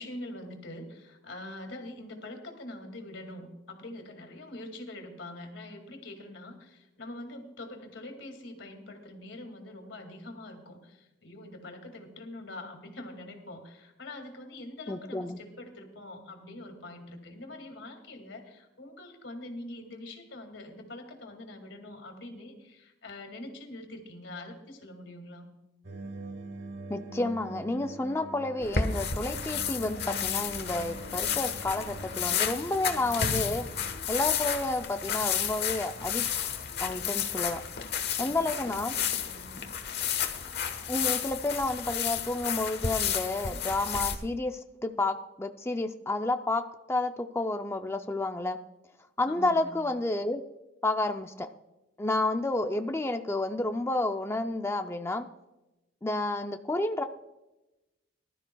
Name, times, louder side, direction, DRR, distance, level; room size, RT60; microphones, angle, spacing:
voice 1, 0.0-25.5 38.2-40.1 49.2-49.7, left 1 dB, 85° left, 5 dB, 2.3 m, -44 dB
voice 2, 14.9-15.4 26.9-33.7 34.1-36.3 36.8-37.6 38.2-38.9 40.9-48.6 49.2-50.4 50.8-51.5 52.0-55.3 56.0-57.0, left 2 dB, 15° left, 6 dB, 0.4 m, -30 dB
sound 1, 25.8-34.0, right 3 dB, 65° right, 1.2 m, -44 dB
sound 2, 28.6-44.2, left 8 dB, 60° left, 1.2 m, -32 dB
20.0 x 12.5 x 2.3 m, 0.99 s
head